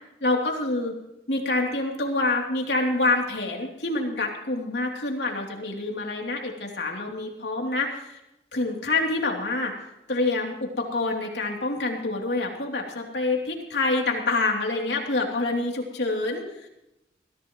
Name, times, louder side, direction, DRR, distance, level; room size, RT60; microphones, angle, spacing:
voice 1, 0.2-0.9 1.3-8.2 8.5-9.7 10.1-16.7, left 2 dB, 80° left, 1 dB, 3.1 m, -27 dB
22.0 x 16.0 x 3.1 m, 0.89 s
head